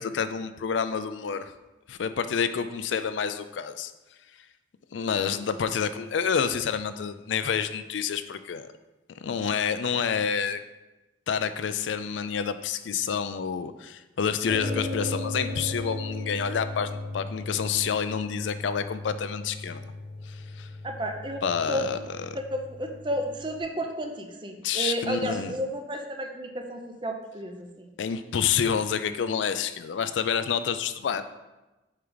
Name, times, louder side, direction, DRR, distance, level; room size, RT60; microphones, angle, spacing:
voice 1, 0.0-1.5 1.9-3.9 4.9-8.7 9.2-10.6 11.3-19.9 20.3-20.7 21.4-22.0 24.6-25.5 28.0-31.2, left 7 dB, 90° left, 11 dB, 0.4 m, -28 dB
sound 1, 14.5-23.6, left 2 dB, 75° right, 2.2 m, -36 dB
voice 2, 20.8-21.9 22.3-27.9, right 1 dB, 25° right, 4 dB, 0.6 m, -32 dB
6.3 x 4.6 x 3.9 m, 1.1 s
head